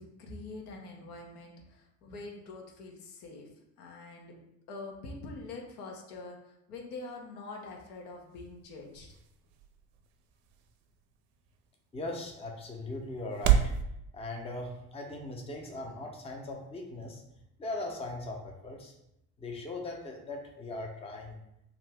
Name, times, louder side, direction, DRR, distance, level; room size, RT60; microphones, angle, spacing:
voice 1, 0.0-3.5 3.8-4.4 4.7-9.1, left 3 dB, 75° left, 1 dB, 0.8 m, -45 dB
sound 1, 7.5-13.8, right 9 dB, 60° right, 0.5 m, -34 dB
voice 2, 11.9-13.7 14.1-17.2 17.6-18.9 19.4-21.4, left 2 dB, 15° left, 1 dB, 0.6 m, -39 dB
2.6 x 2.5 x 3.3 m, 0.80 s
figure-of-eight pair, 55°, 46 cm